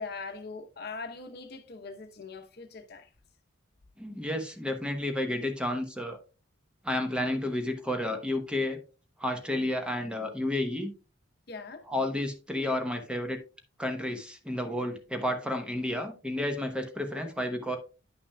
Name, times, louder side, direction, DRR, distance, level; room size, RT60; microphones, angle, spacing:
voice 1, 0.0-3.1 11.5-11.9, left 4 dB, 60° left, 0.8 m, -41 dB
voice 2, 4.0-6.2 6.8-8.8 9.2-10.9 11.9-13.4 13.8-17.8, left 1 dB, 5° right, 0.9 m, -31 dB
9.8 x 5.9 x 2.2 m
head